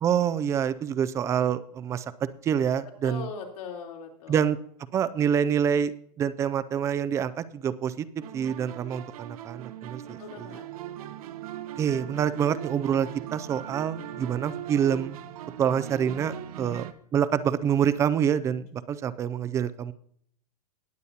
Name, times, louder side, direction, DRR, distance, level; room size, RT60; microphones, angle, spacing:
voice 1, 0.0-2.1 2.4-3.2 4.3-4.6 4.9-8.1 8.3-10.5 11.8-15.2 15.6-16.9 17.1-19.9, right 8 dB, 15° right, 15 dB, 0.3 m, -26 dB
voice 2, 3.0-4.6 10.0-11.2 16.6-16.8, left 5 dB, 70° left, -1 dB, 3.5 m, -41 dB
sound 1, 8.2-16.9, right 12 dB, 65° right, 0.9 m, -40 dB
19.0 x 8.2 x 2.8 m, 0.64 s
hypercardioid pair, 145°, 20 cm